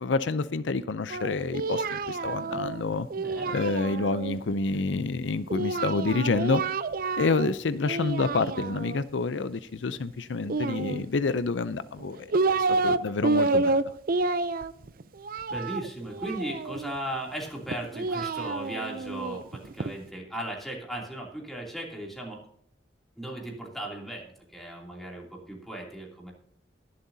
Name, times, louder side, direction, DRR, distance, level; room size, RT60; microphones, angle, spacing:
voice 1, 0.0-3.1 3.5-6.6 7.2-13.8, left 3 dB, 80° left, 14 dB, 0.5 m, -28 dB
Singing, 1.1-4.4 5.5-7.5 7.8-9.0 10.4-11.4 12.0-13.0 13.2-16.9 17.7-19.9, right 3 dB, 50° right, 0.5 m, -29 dB
voice 2, 3.1-3.6 15.5-22.4 23.2-24.3 24.5-26.3, right 1 dB, ahead, -2 dB, 2.8 m, -37 dB
21.5 x 7.7 x 2.8 m, 0.70 s
head